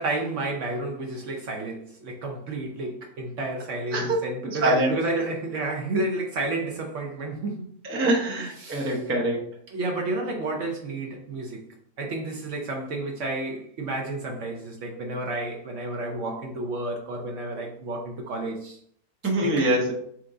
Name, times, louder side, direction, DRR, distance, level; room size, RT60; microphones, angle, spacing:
voice 1, 0.0-7.7 8.3-9.0 9.7-11.6 12.0-18.8 19.4-19.7, right 2 dB, 60° right, 0 dB, 0.8 m, -31 dB
voice 2, 3.9-4.9 7.8-9.4 19.2-19.9, right 1 dB, 20° right, -2 dB, 0.3 m, -24 dB
4.5 x 2.5 x 3.7 m, 0.64 s
omnidirectional pair, 1.8 m